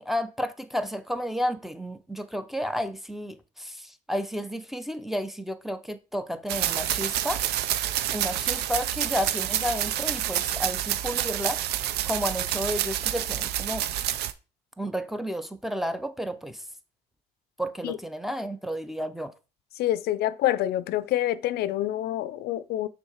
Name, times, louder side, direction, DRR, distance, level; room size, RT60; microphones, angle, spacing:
voice 1, 0.0-7.4 8.1-11.6 12.0-13.9 14.8-16.6 17.6-19.3, equal, ahead, 0.6 m, -32 dB
sound 1, 6.5-14.3, right 12 dB, 75° right, 0.5 m, -28 dB
voice 2, 19.8-22.9, left 13 dB, 70° left, 0.4 m, -27 dB
6.3 x 3.6 x 4.9 m
cardioid pair, 110°, 17 cm